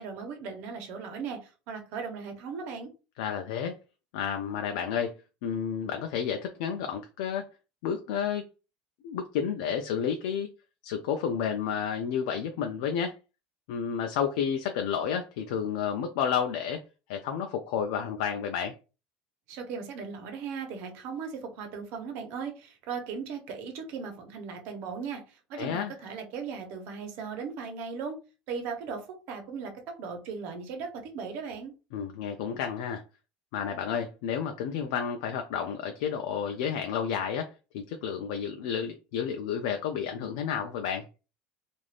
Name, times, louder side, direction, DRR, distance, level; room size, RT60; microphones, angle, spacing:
voice 1, 0.0-2.9 19.5-28.2 28.5-31.7, right 5 dB, 60° right, 0.9 m, -37 dB
voice 2, 3.2-3.7 4.1-5.1 5.4-7.5 7.8-8.4 9.0-10.5 10.8-13.1 13.7-16.8 17.1-18.7 25.6-25.9 31.9-33.0 33.5-41.1, left 7 dB, 85° left, 0.4 m, -31 dB
2.5 x 2.4 x 3.3 m
cardioid pair, 150°, 4 cm